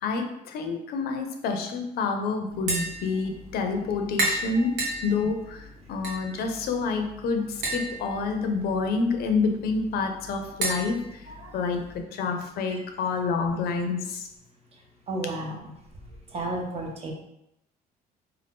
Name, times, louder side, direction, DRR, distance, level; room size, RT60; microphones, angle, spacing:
voice 1, 0.0-11.3 11.5-14.2, left 4 dB, 65° left, 5 dB, 0.5 m, -28 dB
Tap, 2.5-12.0, right 1 dB, 85° right, 0.9 m, -35 dB
voice 2, 15.1-15.6 16.3-17.1, right 2 dB, 35° right, 0 dB, 0.6 m, -31 dB
2.6 x 2.3 x 3.4 m, 0.84 s
cardioid pair, 110°, 17 cm